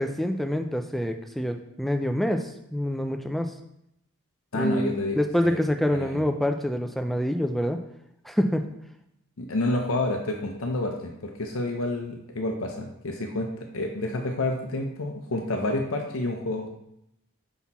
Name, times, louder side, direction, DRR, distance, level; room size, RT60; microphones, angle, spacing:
voice 1, 0.0-3.5 4.5-7.8 8.3-8.7, equal, ahead, 6 dB, 0.3 m, -26 dB
voice 2, 4.5-5.6 5.9-6.2 9.4-16.7, left 2 dB, 65° left, 2 dB, 0.7 m, -29 dB
5.7 x 4.2 x 4.1 m, 0.80 s
head